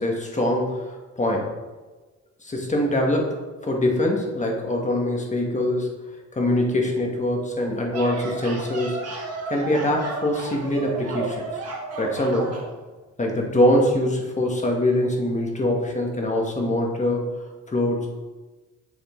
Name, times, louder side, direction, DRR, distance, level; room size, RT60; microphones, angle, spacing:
voice 1, 0.0-1.5 2.4-6.0 6.3-9.0 9.5-11.5 12.0-12.6 13.2-17.4 17.7-18.1, left 1 dB, 25° left, 0 dB, 1.3 m, -23 dB
sound 1, 7.9-12.7, right 3 dB, 55° right, 1.6 m, -33 dB
7.2 x 3.6 x 3.6 m, 1.2 s
cardioid pair, 90°, 30 cm